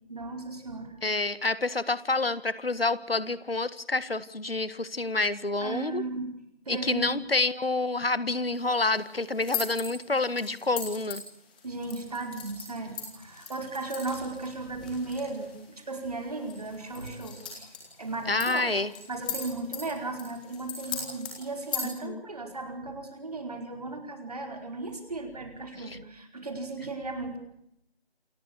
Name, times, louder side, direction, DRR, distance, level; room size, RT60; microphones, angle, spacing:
voice 1, 0.1-1.0 5.6-6.3 6.6-7.2 11.6-17.7 18.0-18.8 19.1-27.4, right 3 dB, 40° right, 4 dB, 4.9 m, -36 dB
voice 2, 1.0-6.0 6.7-11.2 18.3-18.9 21.8-22.2 25.7-26.0, left 3 dB, 65° left, 15 dB, 1.8 m, -28 dB
sound 1, 8.5-21.9, left 6 dB, 10° left, 2.4 m, -40 dB
28.5 x 16.0 x 8.4 m, 0.76 s
figure-of-eight pair, 170°, 31 cm